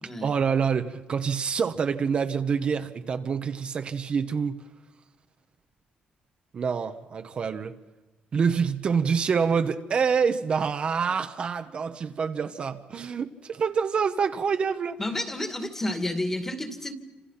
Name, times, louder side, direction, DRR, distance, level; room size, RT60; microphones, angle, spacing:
voice 1, 0.2-4.6 6.5-7.8 8.3-15.0, right 6 dB, 40° right, 1.1 m, -26 dB
voice 2, 15.0-16.9, left 1 dB, 15° left, 2.3 m, -30 dB
28.5 x 27.0 x 5.8 m
cardioid pair, 150°, 3 cm